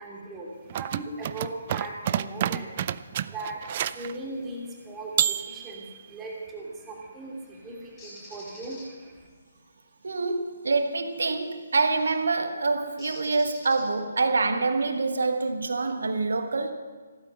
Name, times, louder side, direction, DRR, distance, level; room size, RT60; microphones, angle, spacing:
voice 1, 0.0-9.3, right 2 dB, 10° right, 2.7 m, -39 dB
sound 1, 0.7-4.1 5.2-6.0, right 10 dB, 35° right, 0.4 m, -29 dB
Bird, 8.0-8.8 11.5-11.7 13.0-14.2, left 1 dB, 20° left, 5.3 m, -46 dB
voice 2, 10.0-16.7, right 3 dB, 60° right, 1.2 m, -26 dB
15.5 x 13.0 x 5.5 m
figure-of-eight pair, 135°, 0 cm